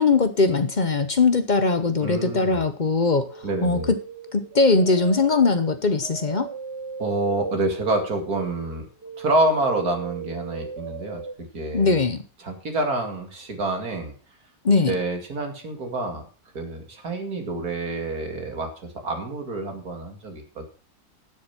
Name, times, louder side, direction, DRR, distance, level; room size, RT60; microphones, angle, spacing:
voice 1, 0.0-3.3 3.6-4.0 4.3-6.5 11.7-12.2 14.6-14.9, left 4 dB, 40° left, 10 dB, 0.7 m, -20 dB
sound 1, 2.0-2.8 3.3-11.3, right 6 dB, 40° right, 1.5 m, -38 dB
voice 2, 2.0-2.6 3.4-3.9 7.0-8.8 9.2-11.2 11.5-12.0 12.4-14.1 14.9-16.2 16.5-20.7, right 2 dB, 55° right, 5 dB, 2.8 m, -27 dB
12.5 x 7.2 x 5.9 m, 0.39 s
omnidirectional pair, 1.9 m